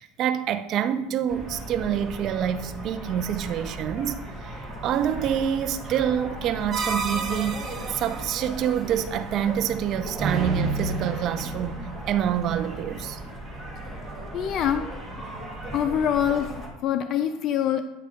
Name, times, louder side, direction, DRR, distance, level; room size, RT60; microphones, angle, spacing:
voice 1, 0.0-4.6 4.8-11.8 12.1-13.2, right 9 dB, 50° right, 0.6 m, -27 dB
sound 1, 1.3-16.7, right 1 dB, 10° right, 1.8 m, -37 dB
sound 2, 6.7-8.4 10.2-11.8, right 4 dB, 30° right, 1.3 m, -30 dB
voice 2, 14.3-14.9 15.7-17.8, left 9 dB, 50° left, 0.4 m, -25 dB
9.7 x 3.3 x 5.1 m
hypercardioid pair, 95°, 0 cm